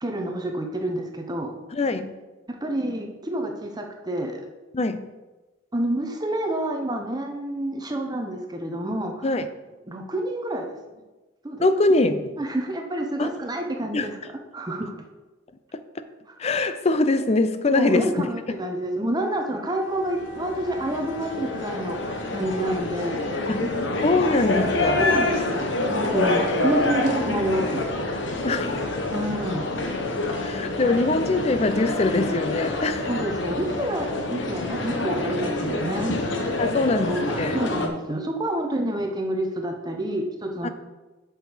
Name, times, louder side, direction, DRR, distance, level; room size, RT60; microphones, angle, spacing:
voice 1, 0.0-1.5 2.5-4.4 5.7-9.3 9.9-10.8 11.4-11.6 12.4-14.2 14.5-15.0 17.7-23.9 25.0-27.8 29.1-29.7 33.1-36.2 37.1-40.7, right 1 dB, 20° right, 0.8 m, -28 dB
voice 2, 1.7-2.2 4.7-5.1 9.2-9.5 11.6-12.3 13.2-13.3 13.9-14.1 15.7-15.8 16.4-18.6 23.5-23.7 24.0-25.0 28.4-28.8 30.4-33.1 36.6-37.6 40.6-40.7, left 2 dB, 35° left, 0.5 m, -23 dB
Wind instrument woodwind instrument, 19.1-25.5, left 6 dB, 55° left, 2.2 m, -44 dB
sound 1, 19.9-37.9, left 2 dB, 75° left, 1.2 m, -27 dB
7.8 x 6.3 x 5.0 m
head